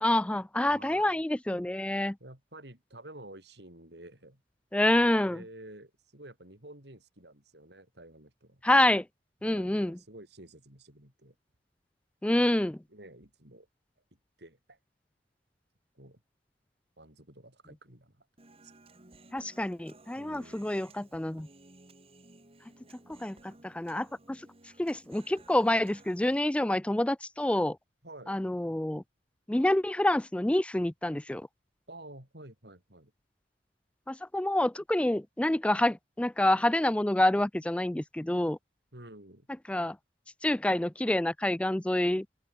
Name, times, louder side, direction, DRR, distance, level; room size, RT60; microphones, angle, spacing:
voice 1, 0.0-2.2 4.7-5.4 8.6-9.0 9.4-10.0 12.2-12.8 19.3-21.5 23.2-24.4 24.8-27.8 28.3-29.0 29.5-31.5 34.1-38.6 39.7-40.0 40.4-42.3, left 1 dB, 5° left, 0.4 m, -27 dB
voice 2, 0.7-1.2 2.2-4.4 5.3-8.8 9.4-11.3 12.9-13.7 14.4-14.8 15.9-16.2 17.0-18.3 18.6-18.7 20.1-20.7 28.0-28.3 31.9-33.1 38.9-39.5, right 1 dB, 70° right, 6.3 m, -50 dB
Human voice, 18.4-26.4, right 2 dB, 35° right, 2.5 m, -57 dB
open air
head